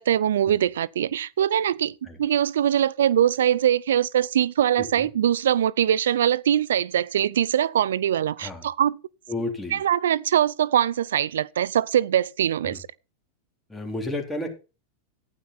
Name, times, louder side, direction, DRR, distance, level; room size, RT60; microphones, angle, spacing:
voice 1, 0.0-1.9 2.2-9.0 9.7-12.8, right 10 dB, 85° right, 0.5 m, -22 dB
voice 2, 4.8-5.1 8.4-8.6 9.3-9.8 12.6-12.8 13.7-14.5, left 2 dB, 5° left, 3.6 m, -32 dB
12.0 x 9.7 x 4.2 m
hypercardioid pair, 120°, 0 cm